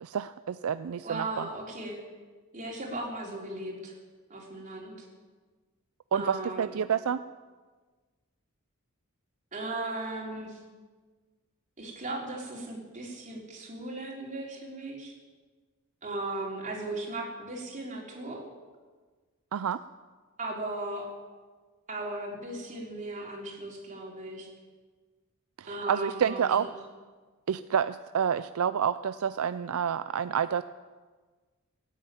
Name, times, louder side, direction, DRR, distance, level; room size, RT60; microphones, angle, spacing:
voice 1, 0.0-1.5 6.1-7.2 19.5-19.8 25.6-26.7 27.5-30.6, right 8 dB, 70° right, 13 dB, 0.4 m, -29 dB
voice 2, 1.0-2.0 2.5-3.9 4.3-5.1 6.1-6.8 9.5-10.6 11.8-15.1 16.0-18.4 20.4-21.1 21.9-24.5 25.7-26.7, right 2 dB, 35° right, -1 dB, 3.5 m, -37 dB
17.0 x 9.3 x 8.9 m, 1.4 s
head